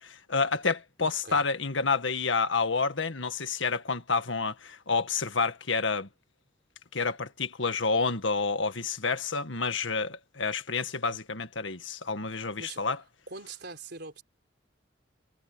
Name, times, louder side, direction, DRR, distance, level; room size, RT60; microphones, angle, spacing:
voice 1, 0.0-6.1 6.9-13.0, left 4 dB, 85° left, 1.8 m, -29 dB
voice 2, 1.0-1.4 12.6-12.8 13.3-14.2, right 3 dB, 60° right, 4.5 m, -43 dB
head